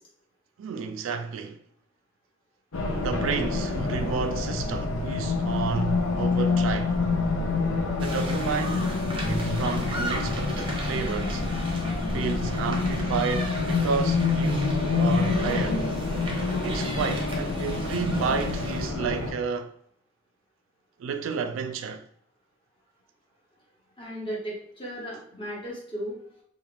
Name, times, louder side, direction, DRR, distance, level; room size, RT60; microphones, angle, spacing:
voice 1, 0.6-1.6 2.9-7.0 8.0-8.9 9.3-11.4 12.1-15.8 16.6-19.7 21.0-22.0, right 5 dB, 75° right, 0.3 m, -31 dB
Race car auto racing, 2.7-19.3, left 3 dB, 75° left, 0.6 m, -27 dB
sound 1, 8.0-18.9, right 2 dB, 25° right, 0.6 m, -38 dB
voice 2, 24.0-26.2, equal, 25° left, 1.0 m, -35 dB
2.4 x 2.4 x 3.2 m
head